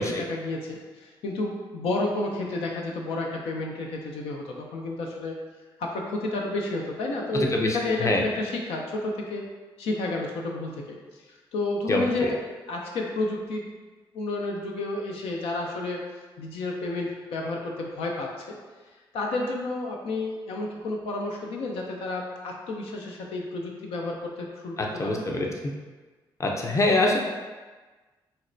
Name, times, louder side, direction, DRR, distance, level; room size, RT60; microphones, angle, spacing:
voice 1, 0.0-5.4 5.8-9.4 9.8-11.0 11.5-12.4 12.7-13.6 14.1-16.0 16.4-18.5 19.1-24.8 25.0-25.3, left 2 dB, 85° left, 0 dB, 0.4 m, -31 dB
voice 2, 7.3-8.2 11.9-12.3 25.0-25.5 26.4-27.2, left 2 dB, 30° left, 0 dB, 0.6 m, -24 dB
3.9 x 2.1 x 2.5 m, 1.3 s
supercardioid pair, 55°, 10 cm